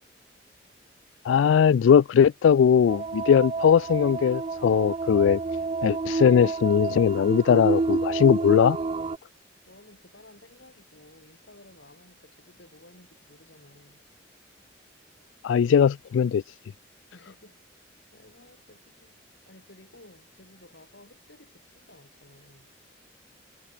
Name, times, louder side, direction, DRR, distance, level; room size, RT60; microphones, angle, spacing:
voice 1, 1.2-5.4 5.8-8.8 15.4-16.4, left 7 dB, 80° left, 0.3 m, -20 dB
sound 1, 2.9-9.2, right 3 dB, 30° right, 0.3 m, -29 dB
voice 2, 9.7-14.0 17.1-17.6 18.1-22.7 23.3-23.5, left 1 dB, 65° left, 5.9 m, -54 dB
head